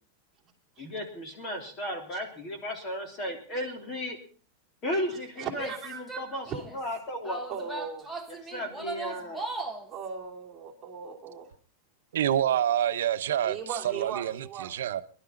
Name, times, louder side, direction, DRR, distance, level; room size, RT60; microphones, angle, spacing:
voice 1, 0.8-4.2 4.8-7.4 8.3-9.4, left 1 dB, 25° left, 3.3 m, -35 dB
voice 2, 5.1-6.0 7.5-8.1 9.9-11.5 13.4-14.7, right 7 dB, 20° right, 3.0 m, -38 dB
Female speech woman speaking / Yell, 5.5-6.8 7.2-9.9, right 3 dB, ahead, 1.3 m, -38 dB
voice 3, 12.1-15.0, right 10 dB, 85° right, 0.9 m, -27 dB
22.0 x 12.0 x 3.8 m
supercardioid pair, 160°, 0 cm